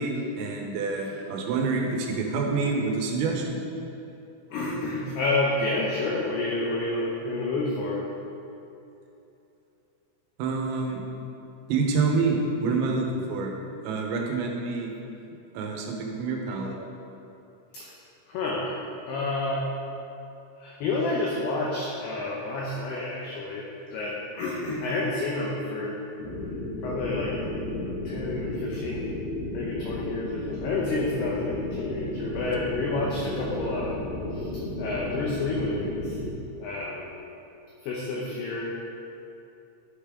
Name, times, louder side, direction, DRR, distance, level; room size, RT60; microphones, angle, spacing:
voice 1, 0.0-3.7 10.4-11.0 11.7-13.5 13.8-14.9 15.6-16.8, right 4 dB, 80° right, 1 dB, 3.6 m, -27 dB
voice 2, 4.5-8.0 17.7-17.9 18.3-18.8 19.1-19.7 20.6-26.0 26.8-27.3 28.0-29.1 29.5-34.0 34.3-34.5 34.8-36.2 36.6-37.1 37.8-38.6, left 2 dB, 90° left, -3 dB, 2.3 m, -29 dB
sound 1, 26.2-36.3, left 1 dB, 65° left, 2.8 m, -33 dB
11.5 x 8.3 x 3.7 m, 2.8 s
omnidirectional pair, 5.9 m